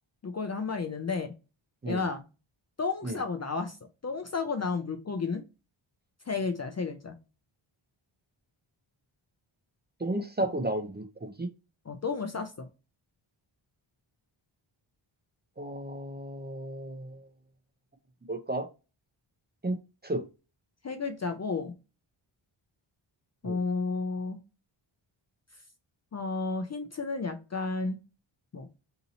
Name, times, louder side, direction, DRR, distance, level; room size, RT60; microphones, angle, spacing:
voice 1, 0.2-1.3 1.9-2.2 2.8-3.8 4.0-5.4 6.3-7.2 11.9-12.5 20.8-21.7 23.4-24.4 26.1-28.0 28.5-28.7, left 4 dB, 35° left, 0.4 m, -32 dB
voice 2, 10.0-11.5 15.6-17.3 18.3-18.7 19.6-19.8 20.0-20.2 23.4-23.6, right 1 dB, 20° right, 0.5 m, -33 dB
2.8 x 2.7 x 3.9 m
wide cardioid pair, 135°, 50 cm